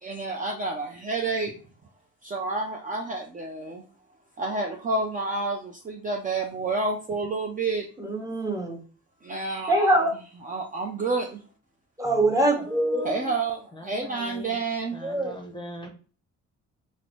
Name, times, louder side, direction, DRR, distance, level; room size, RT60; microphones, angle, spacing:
voice 1, 0.0-1.5 2.2-3.8 4.4-7.9 9.2-10.1 10.4-11.4 13.0-15.0, right 3 dB, 25° right, 1 dB, 0.5 m, -29 dB
voice 2, 8.0-8.8 9.7-10.1 12.0-13.1 15.0-15.3, right 1 dB, 10° right, 0 dB, 1.0 m, -23 dB
voice 3, 12.4-13.3 13.9-14.6 14.9-15.9, equal, 15° left, 2 dB, 0.7 m, -40 dB
3.8 x 2.1 x 3.0 m, 0.38 s
cardioid pair, 90°, 30 cm